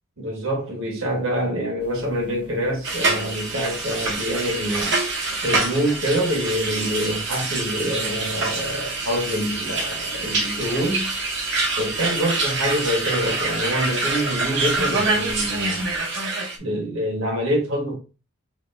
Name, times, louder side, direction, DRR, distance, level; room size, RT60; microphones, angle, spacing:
voice 1, 0.2-4.9 5.4-11.1 11.8-15.9 16.6-18.0, equal, 70° right, 1.5 m, -26 dB
sound 1, 1.8-16.0, left 1 dB, 25° left, 0.8 m, -47 dB
sound 2, 2.8-16.6, right 3 dB, 55° right, 0.9 m, -26 dB
5.0 x 2.7 x 2.5 m
head